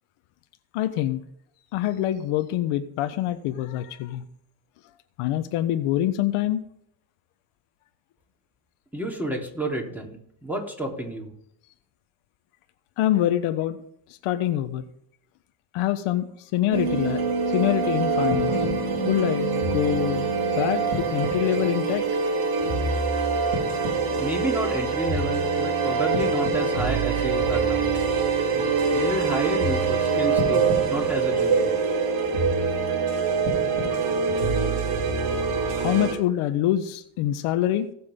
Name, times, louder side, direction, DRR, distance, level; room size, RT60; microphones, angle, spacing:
voice 1, 0.7-1.2 1.7-4.2 5.2-6.6 13.0-13.8 14.2-14.8 15.7-17.2 17.5-18.6 19.0-20.3 20.5-22.1 35.7-37.9, left 12 dB, 80° left, 9 dB, 1.2 m, -25 dB
voice 2, 8.9-11.3 24.2-27.9 28.5-31.7, right 1 dB, 5° right, 0 dB, 3.5 m, -31 dB
sound 1, 16.7-36.1, right 4 dB, 85° right, 4.0 m, -24 dB
19.5 x 7.6 x 3.8 m, 0.71 s
cardioid pair, 110°, 50 cm